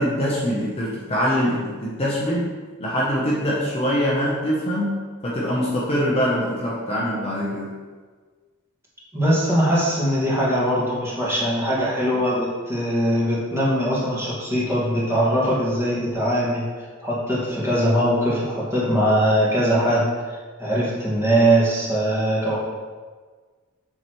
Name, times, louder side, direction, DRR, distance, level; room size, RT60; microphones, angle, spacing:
voice 1, 0.0-2.5 2.8-5.0 5.2-7.7, equal, 30° left, -6 dB, 0.8 m, -23 dB
voice 2, 9.1-22.6, equal, 15° right, -8 dB, 1.8 m, -21 dB
7.0 x 4.8 x 3.1 m, 1.5 s
head